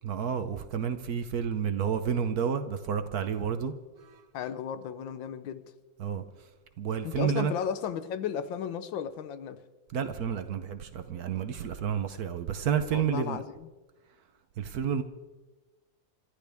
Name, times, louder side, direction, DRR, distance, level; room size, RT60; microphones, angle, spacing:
voice 1, 0.0-3.7 6.0-6.2 6.8-7.5 9.9-13.4 14.6-15.0, right 7 dB, 60° right, 1.1 m, -30 dB
voice 2, 4.3-5.6 7.0-9.6 12.8-13.7, left 8 dB, 80° left, 1.6 m, -34 dB
28.5 x 13.0 x 3.5 m
omnidirectional pair, 2.1 m